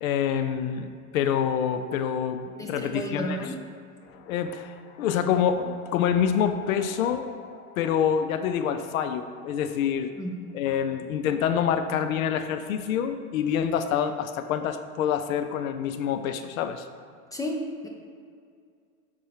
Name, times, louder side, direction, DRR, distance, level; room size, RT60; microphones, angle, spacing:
voice 1, 0.0-3.5 4.1-10.1 10.5-16.9, left 8 dB, 70° left, 9 dB, 0.6 m, -27 dB
voice 2, 2.6-3.6 10.2-10.5 17.3-17.9, equal, 10° left, 0 dB, 0.5 m, -32 dB
6.6 x 5.1 x 4.6 m, 2.2 s
hypercardioid pair, 120°, 43 cm